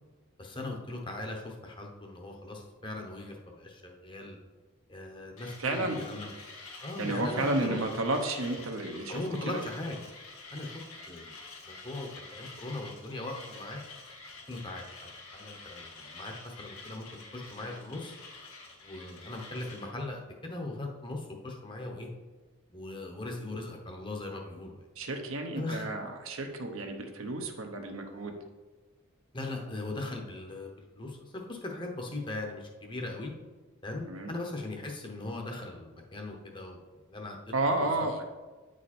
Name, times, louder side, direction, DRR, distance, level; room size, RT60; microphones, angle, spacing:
voice 1, 0.4-4.4 4.9-6.3 6.8-7.8 9.1-10.0 10.5-10.7 11.1-11.4 11.6-13.8 14.5-17.0 17.3-18.2 18.8-22.1 22.7-24.8 25.6-25.9 29.3-33.3 33.8-36.8 37.1-37.4, left 2 dB, 20° left, 2 dB, 0.9 m, -39 dB
Mechanisms, 5.4-19.9, left 3 dB, 85° left, 1.9 m, -48 dB
voice 2, 5.6-6.0 7.0-9.6 25.0-28.3 34.1-34.3 37.5-38.2, right 2 dB, 75° right, 4 dB, 1.0 m, -32 dB
9.1 x 4.9 x 4.3 m, 1.3 s
head